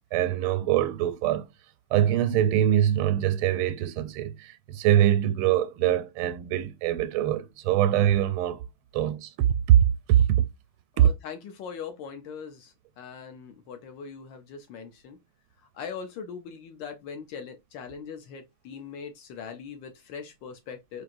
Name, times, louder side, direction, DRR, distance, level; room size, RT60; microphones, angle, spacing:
voice 1, 0.1-1.5 1.9-8.6 8.9-10.4 11.0-11.1, right 11 dB, 85° right, 1.4 m, -23 dB
voice 2, 10.9-15.2 15.7-21.0, left 6 dB, 70° left, 1.3 m, -41 dB
4.7 x 2.7 x 2.5 m
omnidirectional pair, 2.3 m